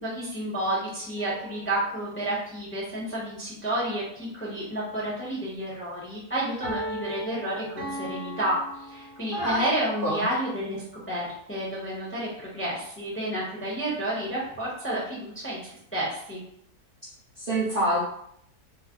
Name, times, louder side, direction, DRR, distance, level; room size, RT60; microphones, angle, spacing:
voice 1, 0.0-16.4, right 1 dB, 10° left, -7 dB, 0.7 m, -31 dB
sound 1, 1.2-2.2 6.6-9.8, right 1 dB, 60° right, 1.1 m, -37 dB
voice 2, 9.3-9.7 10.0-10.2 17.4-18.0, right 1 dB, 45° right, -8 dB, 0.8 m, -25 dB
3.2 x 2.1 x 3.6 m, 0.71 s
omnidirectional pair, 1.7 m